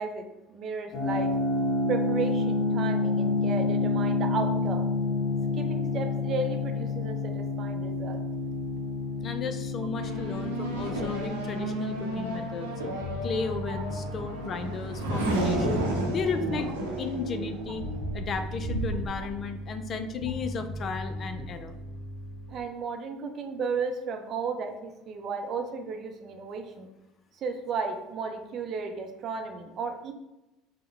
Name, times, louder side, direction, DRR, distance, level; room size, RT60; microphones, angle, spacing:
voice 1, 0.0-1.3 1.9-4.9 5.5-8.2 13.7-13.8 22.5-26.9 27.4-30.1, right 4 dB, 45° right, 5 dB, 0.6 m, -34 dB
sound 1, 0.9-15.7, left 3 dB, 55° left, 1.0 m, -30 dB
voice 2, 9.2-12.7 13.2-17.9 18.1-21.8, left 5 dB, 40° left, 8 dB, 0.4 m, -34 dB
Race car auto racing / Accelerating revving vroom, 10.0-19.1, right 1 dB, 85° right, 0.8 m, -32 dB
Bass guitar, 13.0-22.6, left 1 dB, 5° right, 0.9 m, -38 dB
5.1 x 2.2 x 3.3 m, 0.96 s
figure-of-eight pair, 65°, 0 cm